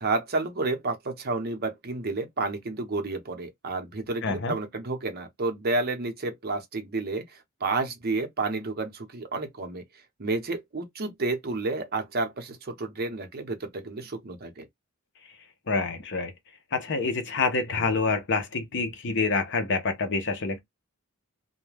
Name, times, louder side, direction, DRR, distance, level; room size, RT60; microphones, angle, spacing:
voice 1, 0.0-7.2 7.6-9.8 10.2-14.7, right 3 dB, 45° right, 0.7 m, -30 dB
voice 2, 4.2-4.5 15.7-16.3 16.7-20.6, left 4 dB, 55° left, 0.6 m, -27 dB
2.4 x 2.1 x 3.2 m
head